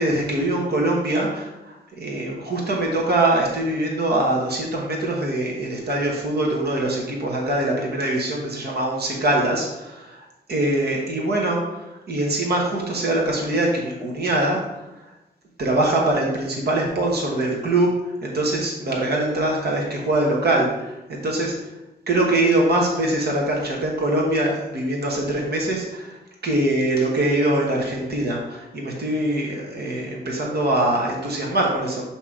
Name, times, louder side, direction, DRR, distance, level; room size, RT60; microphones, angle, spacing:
voice 1, 0.0-1.5 2.0-10.2 10.5-14.6 15.6-17.9 18.2-21.5 22.1-26.1 26.4-32.1, right 1 dB, 65° right, -1 dB, 1.1 m, -23 dB
7.2 x 2.9 x 4.9 m, 0.97 s
wide cardioid pair, 155°, 18 cm